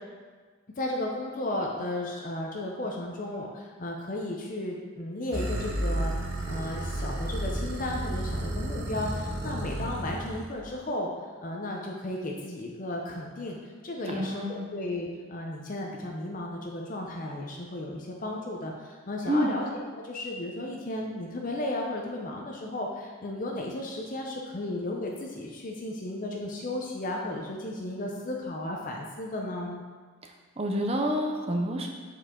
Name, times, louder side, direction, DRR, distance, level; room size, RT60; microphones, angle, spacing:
voice 1, 0.8-6.1 6.5-11.1 11.4-13.6 13.8-29.8, left 1 dB, 40° left, 0 dB, 0.6 m, -34 dB
sound 1, 5.3-10.5, right 1 dB, 60° right, 0.8 m, -32 dB
voice 2, 14.1-14.7 19.3-19.6 30.6-31.9, equal, 30° right, 3 dB, 0.6 m, -28 dB
7.1 x 4.5 x 3.7 m, 1.5 s
head